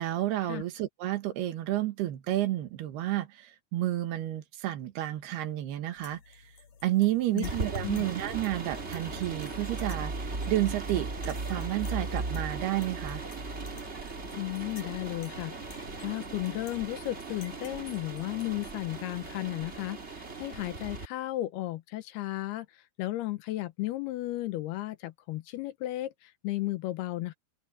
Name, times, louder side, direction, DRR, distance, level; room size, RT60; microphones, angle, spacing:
voice 1, 0.0-6.4 6.8-13.2, right 14 dB, 75° right, 3.4 m, -31 dB
sound 1, 6.0-19.4, left 5 dB, 45° left, 4.7 m, -54 dB
sound 2, 7.4-21.1, right 3 dB, 25° right, 1.4 m, -37 dB
voice 2, 14.3-27.3, left 16 dB, 80° left, 2.7 m, -34 dB
open air
omnidirectional pair, 4.9 m